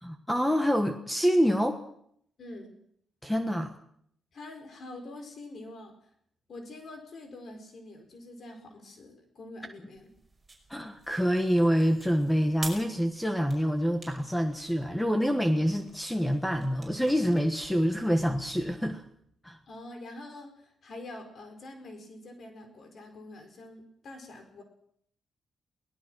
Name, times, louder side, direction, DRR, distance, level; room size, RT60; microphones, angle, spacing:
voice 1, 0.0-1.8 3.2-3.7 10.7-19.0 19.4-19.6, equal, 5° left, 7 dB, 1.4 m, -26 dB
voice 2, 2.4-2.8 4.3-6.1 6.5-10.1 19.7-24.6, left 2 dB, 50° left, 5 dB, 4.5 m, -45 dB
sound 1, 9.9-18.8, right 3 dB, 15° right, 5.5 m, -48 dB
23.0 x 18.5 x 6.2 m, 0.68 s
cardioid pair, 125°, 0 cm